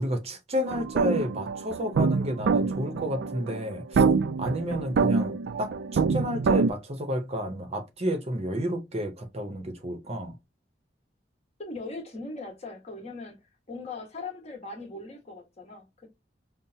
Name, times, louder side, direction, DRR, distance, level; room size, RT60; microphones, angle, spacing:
voice 1, 0.0-4.0 4.4-10.4, equal, 35° right, 0.7 m, -31 dB
sound 1, 0.7-6.7, right 4 dB, 65° right, 0.3 m, -26 dB
voice 2, 11.6-13.4 13.7-16.1, left 3 dB, 35° left, 1.3 m, -39 dB
5.5 x 2.0 x 2.7 m
head